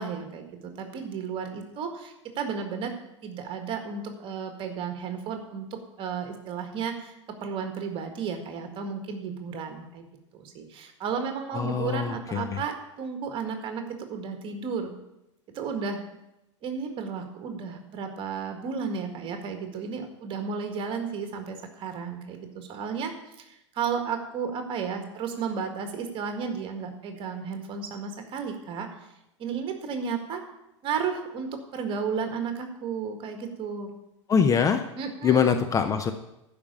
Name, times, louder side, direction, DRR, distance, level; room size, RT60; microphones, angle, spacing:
voice 1, 0.0-2.9 3.2-10.0 10.3-14.9 15.5-16.0 16.6-23.1 23.5-28.9 29.4-30.4 30.8-33.9 35.0-35.6, right 6 dB, 35° right, 6 dB, 1.7 m, -33 dB
voice 2, 11.5-12.6 34.3-34.8 35.2-36.1, left 7 dB, 20° left, 7 dB, 0.7 m, -23 dB
12.0 x 5.1 x 8.5 m, 0.90 s
figure-of-eight pair, 90°, 16 cm